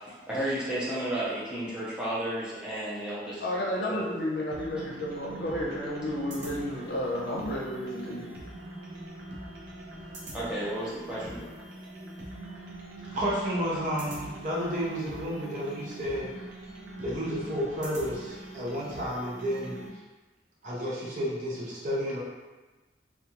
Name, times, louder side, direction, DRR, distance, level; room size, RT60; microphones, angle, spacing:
voice 1, 0.3-4.1 10.3-11.4, right 1 dB, 5° right, -10 dB, 0.7 m, -33 dB
voice 2, 3.4-8.3, left 1 dB, 65° left, -4 dB, 0.6 m, -32 dB
sound 1, 4.5-19.9, right 1 dB, 80° right, 0.6 m, -43 dB
voice 3, 13.1-16.3 17.0-19.8 20.6-22.2, equal, 45° right, -6 dB, 0.7 m, -31 dB
2.5 x 2.3 x 2.8 m, 1.2 s
head